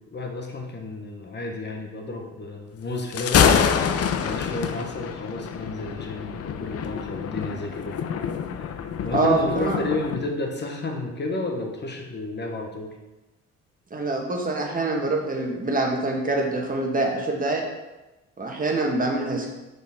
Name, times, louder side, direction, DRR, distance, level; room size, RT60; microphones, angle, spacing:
voice 1, 0.1-3.5 4.2-8.1 8.6-8.7 9.0-13.0, left 2 dB, 35° left, 2 dB, 1.2 m, -31 dB
Thunder, 3.0-10.2, left 7 dB, 55° left, 0.5 m, -26 dB
voice 2, 9.1-9.8 13.9-17.7 18.4-19.5, right 2 dB, 30° right, 1 dB, 1.4 m, -25 dB
6.4 x 5.1 x 3.5 m, 1.0 s
cardioid pair, 90°, 30 cm